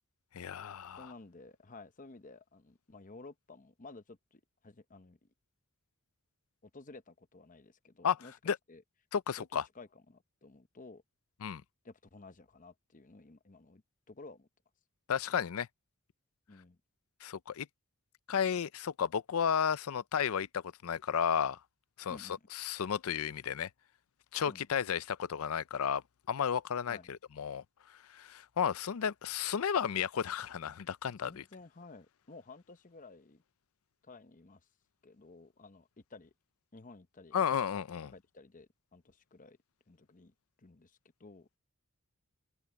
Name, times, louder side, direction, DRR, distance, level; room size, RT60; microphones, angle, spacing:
voice 1, 0.3-1.1 8.0-8.2 8.5-8.6 9.1-9.6 11.4-11.6 15.1-15.7 17.2-17.7 18.3-21.6 22.0-23.7 24.3-27.6 28.1-31.4 37.3-38.1, left 7 dB, 70° left, 0.5 m, -33 dB
voice 2, 1.0-5.3 6.6-8.3 8.7-8.8 9.4-9.5 9.7-11.0 11.8-13.8 14.1-14.5 16.5-16.8 22.1-22.5 24.5-24.6 26.9-27.1 31.2-33.4 34.0-34.6 35.0-36.3 36.7-37.4 38.1-39.6 39.9-41.5, left 3 dB, 35° left, 0.8 m, -53 dB
head